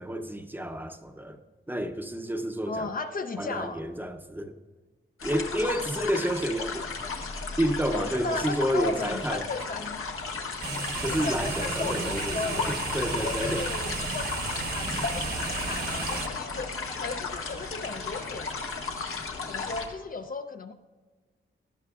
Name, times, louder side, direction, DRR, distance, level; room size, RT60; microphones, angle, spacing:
voice 1, 0.0-1.4 1.7-2.9 3.4-4.5 5.2-6.9 7.6-9.5 11.0-13.7, equal, 10° right, 0.7 m, -30 dB
voice 2, 2.7-3.8 8.0-10.0 11.0-12.8 13.2-18.5 19.5-20.7, left 3 dB, 40° left, 0.5 m, -36 dB
sound 1, 5.2-19.9, left 4 dB, 85° left, 1.4 m, -34 dB
sound 2, 10.6-16.3, right 4 dB, 45° right, 1.1 m, -33 dB
17.5 x 12.5 x 2.4 m
wide cardioid pair, 170°, 21 cm